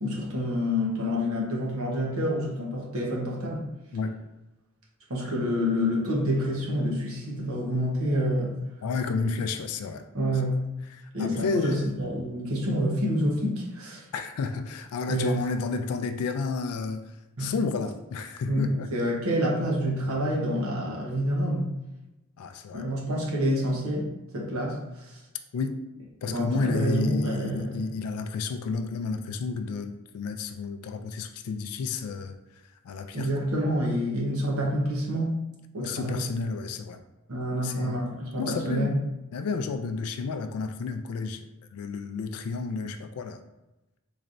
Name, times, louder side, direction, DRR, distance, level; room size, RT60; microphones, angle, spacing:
voice 1, 0.0-3.7 5.1-8.6 10.1-10.6 11.1-14.0 15.1-15.4 17.4-17.5 18.5-21.7 22.7-25.1 26.3-27.9 33.1-35.4 35.7-36.2 37.3-39.0, equal, 70° right, -3 dB, 1.0 m, -28 dB
voice 2, 8.8-10.0 10.4-10.5 10.9-11.9 14.1-18.9 22.4-22.9 25.5-25.8 26.2-32.4 32.8-33.4 35.8-37.0 37.6-38.0 38.3-38.9 39.3-41.4 41.7-43.4, left 4 dB, 85° left, 8 dB, 0.3 m, -31 dB
4.0 x 3.2 x 2.5 m, 0.99 s
head